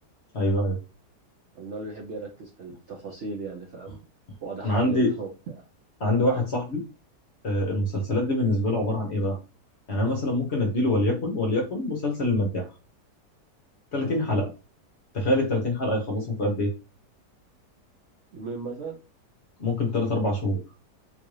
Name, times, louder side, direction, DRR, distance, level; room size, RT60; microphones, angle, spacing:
voice 1, 0.3-0.8 4.6-5.1 6.0-6.8 7.4-9.4 9.9-12.7 13.9-14.5 15.1-16.7 19.6-20.6, left 1 dB, 50° left, 1 dB, 0.9 m, -25 dB
voice 2, 1.5-4.1 4.4-5.6 14.0-14.2 18.3-19.0, right 3 dB, 60° right, 1 dB, 0.8 m, -37 dB
3.9 x 2.5 x 3.1 m, 0.30 s
omnidirectional pair, 1.8 m